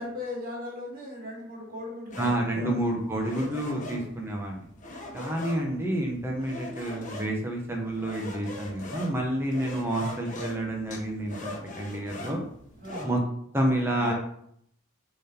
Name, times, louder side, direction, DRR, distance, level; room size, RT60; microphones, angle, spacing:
voice 1, 0.0-2.8 3.8-4.1 12.8-13.1 14.0-14.1, left 1 dB, 45° right, -3 dB, 2.7 m, -37 dB
sound 1, 2.1-13.0, left 2 dB, 40° left, 1.2 m, -42 dB
voice 2, 2.2-4.6 5.1-12.4 13.0-13.2 13.5-14.1, right 1 dB, 10° right, 0 dB, 0.9 m, -29 dB
6.9 x 3.9 x 4.3 m, 0.68 s
head